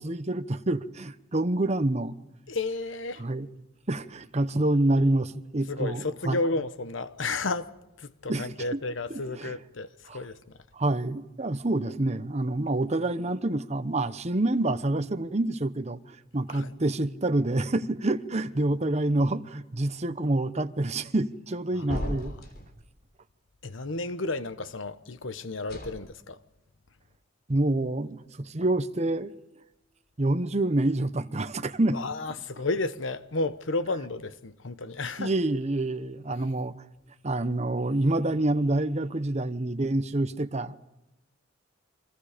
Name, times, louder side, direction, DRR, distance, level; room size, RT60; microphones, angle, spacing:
voice 1, 0.0-2.2 3.2-3.5 3.9-6.4 8.3-8.8 9.1-9.6 10.1-10.2 10.7-22.3 27.5-29.3 30.2-32.0 35.2-36.8 37.2-40.8, right 2 dB, 35° right, 1.0 m, -27 dB
voice 2, 2.5-3.2 5.7-7.7 8.0-10.4 16.5-16.7 21.7-22.1 23.6-26.4 31.9-35.3, left 3 dB, 75° left, 1.1 m, -32 dB
sound 1, 21.9-22.8 25.6-25.9, equal, 55° left, 3.8 m, -34 dB
29.5 x 24.5 x 5.1 m
head